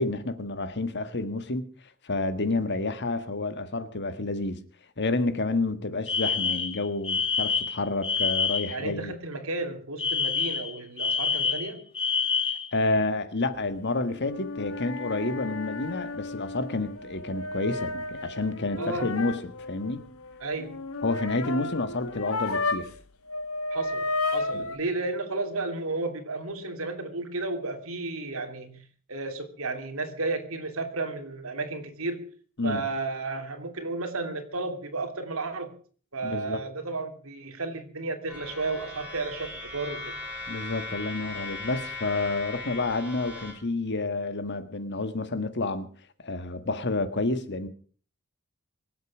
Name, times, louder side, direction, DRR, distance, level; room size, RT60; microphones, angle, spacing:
voice 1, 0.0-1.7 2.0-4.6 5.0-9.1 12.7-20.0 21.0-22.9 24.5-24.6 32.6-32.8 36.2-36.6 40.5-45.9 46.2-47.7, left 2 dB, 55° left, 1.6 m, -29 dB
Alarm, 6.1-8.8 10.0-12.7, left 5 dB, 25° left, 1.8 m, -27 dB
voice 2, 8.7-11.8 18.8-19.1 20.4-20.8 23.7-24.0 24.3-28.8 29.1-32.2 32.6-35.7 36.1-40.2, right 3 dB, 70° right, 3.0 m, -33 dB
sound 1, 14.2-23.0 23.3-24.8, left 3 dB, 75° left, 1.5 m, -33 dB
sound 2, 38.3-43.5, left 3 dB, 5° right, 6.2 m, -38 dB
24.0 x 8.2 x 6.2 m
head